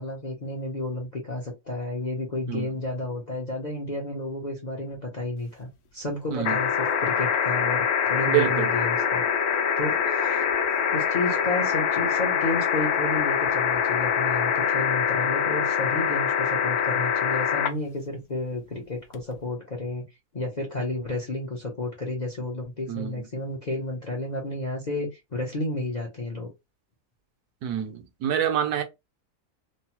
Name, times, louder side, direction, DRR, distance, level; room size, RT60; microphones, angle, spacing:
voice 1, 0.0-9.2 9.8-10.5 10.9-20.0 20.3-26.5, left 2 dB, 45° left, 0.5 m, -31 dB
sound 1, 6.4-17.7 19.1-19.2, left 7 dB, 70° left, 1.1 m, -24 dB
voice 2, 8.3-8.7 22.9-23.2 27.6-28.8, right 10 dB, 75° right, 1.1 m, -26 dB
3.2 x 2.0 x 2.9 m
omnidirectional pair, 1.7 m